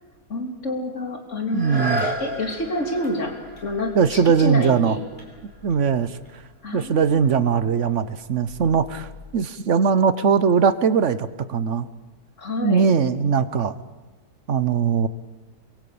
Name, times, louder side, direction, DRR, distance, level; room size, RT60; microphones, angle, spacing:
voice 1, 0.3-1.8 2.2-3.3 3.6-5.1 6.6-7.4 12.4-12.9, left 1 dB, 50° left, 3 dB, 3.6 m, -28 dB
sound 1, 1.5-7.1 7.7-7.8, right 1 dB, 35° right, 5.6 m, -34 dB
voice 2, 1.5-2.0 3.9-5.0 5.6-6.2 6.7-11.9 12.6-13.7 14.5-15.1, right 6 dB, 50° right, 14 dB, 1.2 m, -20 dB
sound 2, 1.9-9.3, left 4 dB, 30° left, 6.6 m, -49 dB
28.5 x 22.5 x 8.6 m, 1.2 s
omnidirectional pair, 1.7 m